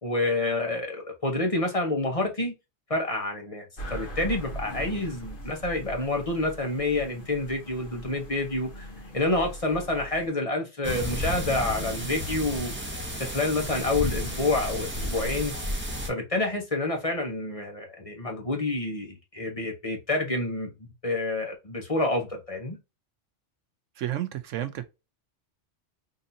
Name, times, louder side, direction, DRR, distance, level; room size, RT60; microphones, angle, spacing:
voice 1, 0.0-2.5 2.9-8.9 9.1-12.9 13.2-15.5 16.1-20.7 21.0-22.8, left 2 dB, 30° left, 1.0 m, -28 dB
sound 1, 3.8-10.3, equal, 45° left, 1.2 m, -40 dB
sound 2, 10.8-16.1, equal, 10° right, 0.9 m, -32 dB
voice 2, 24.0-24.8, right 12 dB, 85° right, 1.0 m, -31 dB
3.9 x 2.7 x 2.7 m
omnidirectional pair, 1.3 m